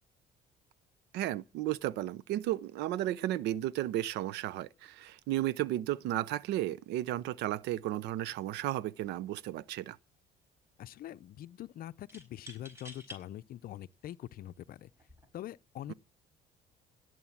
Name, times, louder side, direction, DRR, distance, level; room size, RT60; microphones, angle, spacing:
voice 1, 1.1-10.0, right 14 dB, 85° right, 0.7 m, -34 dB
sound 1, 9.0-9.2 9.5-10.2 12.1-13.2 13.9-14.0 14.9-15.2, equal, 15° right, 4.7 m, -51 dB
voice 2, 10.8-14.9 15.3-15.9, left 12 dB, 60° left, 0.6 m, -44 dB
17.0 x 7.7 x 7.3 m
cardioid pair, 110°, 17 cm